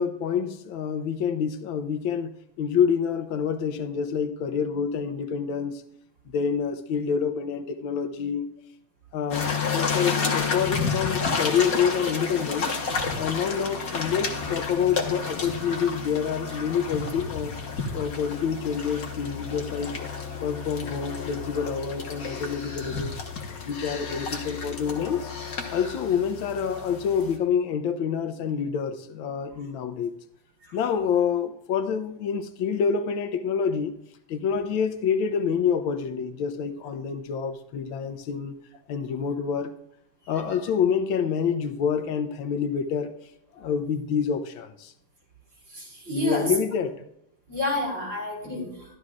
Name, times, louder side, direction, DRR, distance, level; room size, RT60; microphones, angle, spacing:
voice 1, 0.0-5.8 6.3-8.5 9.1-12.7 13.2-17.6 17.9-20.1 20.4-23.3 23.6-25.3 25.7-30.1 30.7-33.9 34.3-38.6 38.9-39.7 40.3-43.2 43.6-44.9 46.1-47.1, left 7 dB, 90° left, 1.5 m, -27 dB
sound 1, 9.3-27.4, left 5 dB, 50° left, 1.7 m, -31 dB
voice 2, 45.7-46.5 47.5-48.9, left 1 dB, 70° right, 5.3 m, -30 dB
14.0 x 12.5 x 2.4 m
omnidirectional pair, 2.1 m